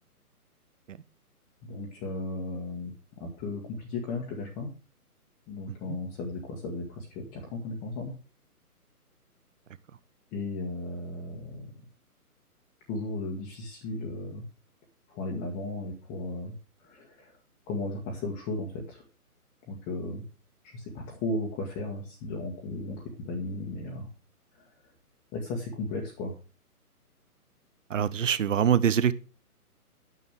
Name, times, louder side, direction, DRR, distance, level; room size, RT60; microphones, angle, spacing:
voice 1, 1.7-2.9 3.2-4.7 5.5-8.1 10.3-11.7 12.9-14.4 15.1-16.5 16.8-17.4 17.7-19.0 19.7-20.2 20.7-24.1 24.5-24.6 25.3-26.3, left 2 dB, 15° left, 1.6 m, -35 dB
voice 2, 27.9-29.1, right 8 dB, 55° right, 0.9 m, -24 dB
9.4 x 7.5 x 6.2 m
figure-of-eight pair, 140°, 46 cm